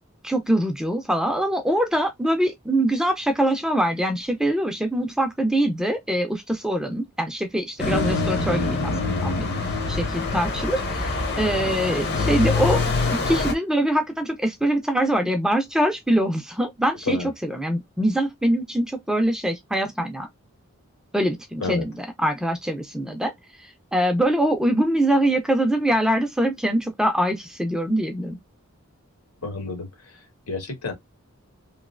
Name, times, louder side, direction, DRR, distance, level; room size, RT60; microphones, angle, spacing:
voice 1, 0.2-9.5 9.9-12.8 13.3-20.3 21.1-23.3 23.9-28.4, right 1 dB, 5° right, 0.5 m, -23 dB
sound 1, 7.8-13.5, left 3 dB, 50° left, 0.9 m, -24 dB
voice 2, 29.4-30.2 30.5-30.9, left 3 dB, 80° left, 1.7 m, -30 dB
3.1 x 2.6 x 2.5 m
head